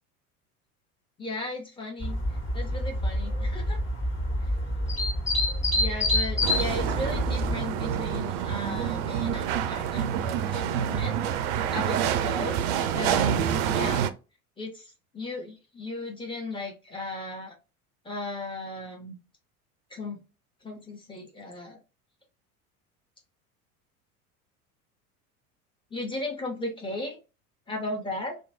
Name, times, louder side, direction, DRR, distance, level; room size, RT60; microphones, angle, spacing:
voice 1, 1.2-3.8 5.7-11.2 11.7-14.1 14.6-17.5 18.0-19.2 19.9-20.2 20.6-21.8 25.9-27.2 27.7-28.4, left 2 dB, 10° left, 0 dB, 1.1 m, -36 dB
sound 1, 2.0-7.5, left 1 dB, 25° left, 1.5 m, -27 dB
sound 2, 6.4-14.1, right 9 dB, 50° right, 0.4 m, -27 dB
2.9 x 2.2 x 2.7 m, 0.30 s
figure-of-eight pair, 75°, 44 cm